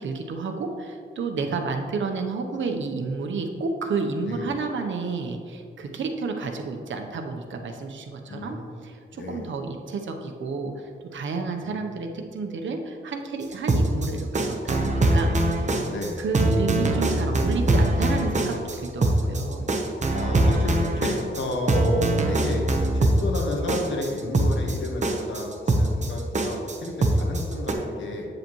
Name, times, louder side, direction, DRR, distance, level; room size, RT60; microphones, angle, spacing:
voice 1, 0.0-8.6 8.8-15.4 16.2-19.7, right 4 dB, 80° right, 4 dB, 0.8 m, -30 dB
voice 2, 1.3-1.9 4.3-4.5 8.3-8.8 9.1-9.4 11.5-11.7 15.9-16.2 20.1-22.6 22.9-28.3, left 1 dB, 80° left, 1 dB, 1.3 m, -32 dB
sound 1, 13.5-27.7, right 1 dB, 40° right, 0.9 m, -22 dB
8.5 x 7.8 x 3.1 m, 2.2 s
wide cardioid pair, 100°, 19 cm